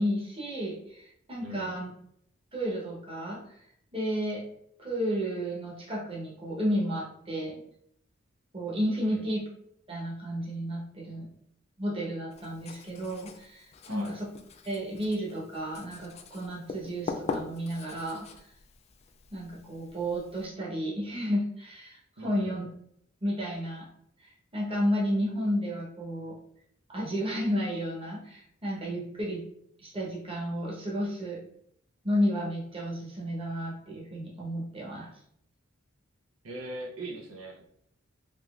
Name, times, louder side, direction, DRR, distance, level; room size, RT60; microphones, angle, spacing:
voice 1, 0.0-1.9 2.5-3.7 3.9-4.4 4.8-7.6 8.5-9.4 9.9-11.3 11.8-14.3 14.6-18.5 19.3-22.6 23.2-23.9 24.2-26.4 26.9-29.5 29.8-31.4 32.0-35.1, equal, 25° right, -4 dB, 1.0 m, -32 dB
voice 2, 1.4-1.7 9.0-9.2 13.8-14.2 22.2-22.6 36.4-37.6, right 1 dB, 90° right, 1 dB, 0.7 m, -40 dB
Writing, 12.3-20.5, left 4 dB, 30° left, 0.3 m, -42 dB
3.5 x 2.9 x 2.4 m, 0.69 s
head